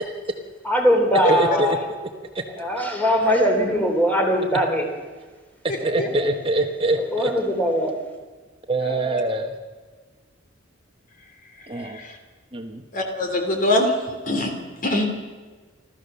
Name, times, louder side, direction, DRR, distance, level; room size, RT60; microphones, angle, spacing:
voice 1, 0.7-1.8 2.6-4.8 5.8-6.3 7.1-7.9, equal, 10° left, 2 dB, 3.6 m, -21 dB
voice 2, 1.3-1.8 2.3-2.4 5.6-7.3 8.7-9.5 11.7-12.0 12.5-12.8, right 2 dB, 25° right, 4 dB, 1.2 m, -24 dB
voice 3, 8.8-9.2 12.0-12.1 12.9-13.9 14.3-14.5 14.8-15.1, left 1 dB, 45° left, 4 dB, 3.1 m, -23 dB
29.5 x 13.0 x 6.8 m, 1.4 s
head